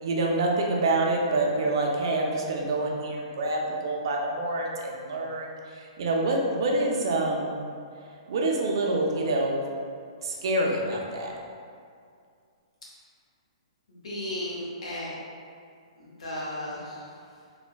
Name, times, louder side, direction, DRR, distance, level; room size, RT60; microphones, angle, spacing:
voice 1, 0.0-7.6 8.3-9.6 10.2-11.3, right 2 dB, 45° right, -1 dB, 0.4 m, -27 dB
voice 2, 13.9-15.1 16.0-17.4, left 1 dB, 85° left, -5 dB, 0.9 m, -35 dB
3.2 x 2.1 x 2.2 m, 2.3 s
hypercardioid pair, 175°, 3 cm